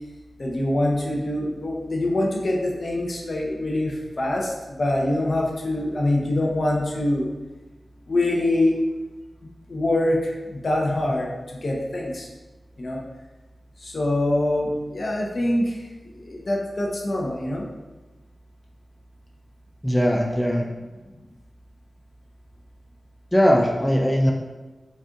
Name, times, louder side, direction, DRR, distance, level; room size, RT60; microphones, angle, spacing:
voice 1, 0.4-7.3 8.1-8.7 9.7-12.3 12.8-13.0 13.8-15.8 16.1-17.6, left 1 dB, 55° left, -1 dB, 0.8 m, -24 dB
voice 2, 19.8-20.6 23.3-24.3, equal, 10° left, 0 dB, 0.4 m, -19 dB
4.2 x 2.4 x 3.6 m, 1.2 s
wide cardioid pair, 65°, 0 cm